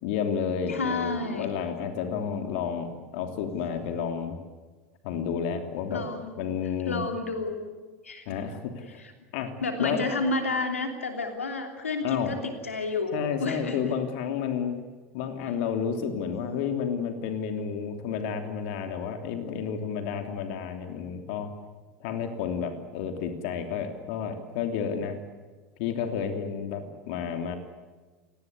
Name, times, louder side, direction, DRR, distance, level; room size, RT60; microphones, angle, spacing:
voice 1, 0.0-4.4 5.0-6.0 6.4-7.0 8.3-9.0 9.3-9.5 9.8-10.0 12.0-12.3 13.1-14.7 15.1-21.5 22.0-25.2 25.8-27.6, left 7 dB, 60° left, 6 dB, 3.1 m, -31 dB
voice 2, 0.7-1.5 5.9-6.4 6.9-7.8 8.0-8.4 9.0-9.1 9.6-13.9, left 3 dB, 85° left, 5 dB, 3.0 m, -30 dB
28.5 x 19.5 x 8.2 m, 1.3 s
hypercardioid pair, 80°, 7 cm